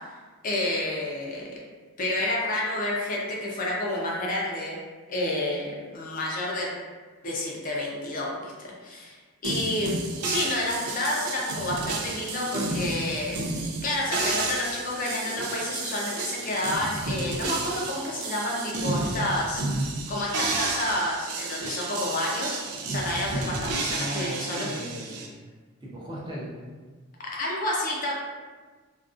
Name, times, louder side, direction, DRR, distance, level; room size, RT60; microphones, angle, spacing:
voice 1, 0.4-1.5 2.0-4.8 5.1-6.7 7.2-19.6 20.1-24.7 27.3-28.1, left 1 dB, 40° left, -3 dB, 0.4 m, -30 dB
sound 1, 9.4-25.3, right 3 dB, 90° right, 0.4 m, -31 dB
voice 2, 23.9-25.3 25.8-26.5, equal, 20° right, -6 dB, 0.4 m, -36 dB
2.4 x 2.2 x 2.4 m, 1.4 s
head